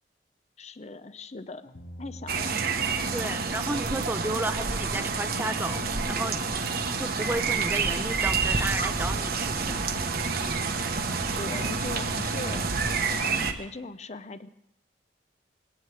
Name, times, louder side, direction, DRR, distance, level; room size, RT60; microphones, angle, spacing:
voice 1, 0.6-1.7 2.0-2.5 11.3-12.7 13.1-14.5, left 3 dB, 40° left, 12 dB, 0.7 m, -39 dB
sound 1, 1.7-13.5, left 1 dB, 60° left, 1.3 m, -43 dB
sound 2, 2.3-13.5, right 4 dB, 55° right, 1.1 m, -28 dB
voice 2, 3.1-5.8 6.1-6.4 7.0-9.8, right 2 dB, 10° right, 10 dB, 0.7 m, -32 dB
20.5 x 17.5 x 3.4 m, 0.83 s
head